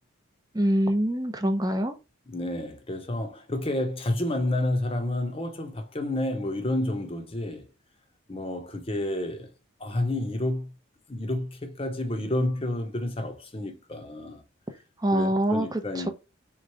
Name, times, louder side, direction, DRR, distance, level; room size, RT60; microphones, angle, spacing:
voice 1, 0.5-1.9 15.0-15.8, right 1 dB, 20° right, 0.7 m, -24 dB
voice 2, 2.3-7.7 8.3-9.5 9.8-10.7 11.1-14.4 15.1-16.1, left 1 dB, 25° left, 0.8 m, -30 dB
3.6 x 3.1 x 4.7 m
head